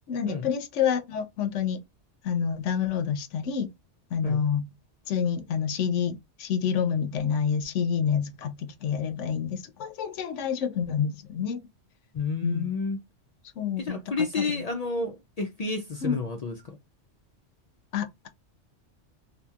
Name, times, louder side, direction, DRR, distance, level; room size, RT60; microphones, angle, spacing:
voice 1, 0.1-1.8 2.2-3.7 4.1-4.7 5.1-11.6 12.4-12.7 13.6-14.6 16.0-16.2 17.9-18.3, left 7 dB, 85° left, 0.9 m, -28 dB
voice 2, 12.1-13.0 13.8-16.8, left 4 dB, 70° left, 0.3 m, -30 dB
2.8 x 2.2 x 2.3 m
omnidirectional pair, 1.2 m